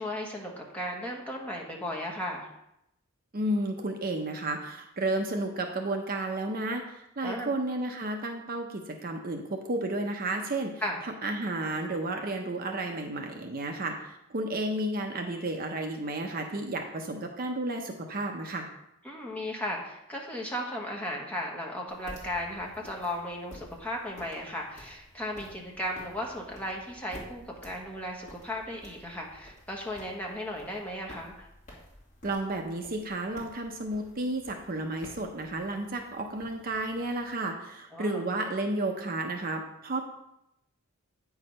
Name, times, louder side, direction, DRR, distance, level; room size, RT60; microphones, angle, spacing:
voice 1, 0.0-2.5 7.2-7.5 10.8-11.0 19.0-31.5 37.9-38.2, left 1 dB, 5° left, -2 dB, 1.2 m, -36 dB
voice 2, 3.3-10.7 11.0-18.7 32.2-40.0, right 2 dB, 40° right, 3 dB, 0.7 m, -32 dB
sound 1, 21.9-37.3, equal, 30° left, 2.1 m, -52 dB
8.6 x 4.7 x 5.4 m, 0.84 s
head